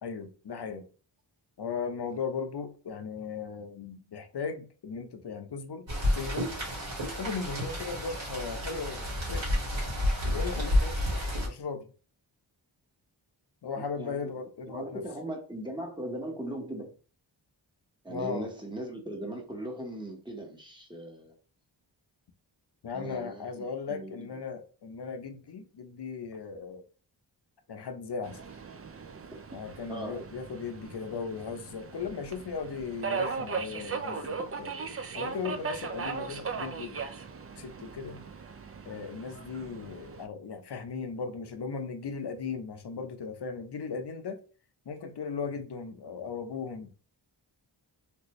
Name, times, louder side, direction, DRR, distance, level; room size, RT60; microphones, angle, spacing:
voice 1, 0.0-0.8 1.6-5.9 6.1-6.5 7.2-9.6 10.3-11.2 11.5-11.9 13.6-15.0 18.1-18.5 22.8-26.8 27.7-28.4 29.5-34.7 35.1-37.0 37.5-38.2 38.9-44.4 44.9-46.9, left 5 dB, 60° left, 0.7 m, -37 dB
Rain, 5.9-11.5, left 1 dB, 75° right, 1.9 m, -30 dB
voice 2, 13.7-14.4 14.7-16.9 18.0-21.3 22.9-24.3 29.9-30.2, right 1 dB, 10° right, 1.2 m, -39 dB
Subway metro underground, 28.2-40.3, right 5 dB, 35° right, 0.4 m, -38 dB
3.3 x 2.6 x 3.0 m
wide cardioid pair, 60°, 46 cm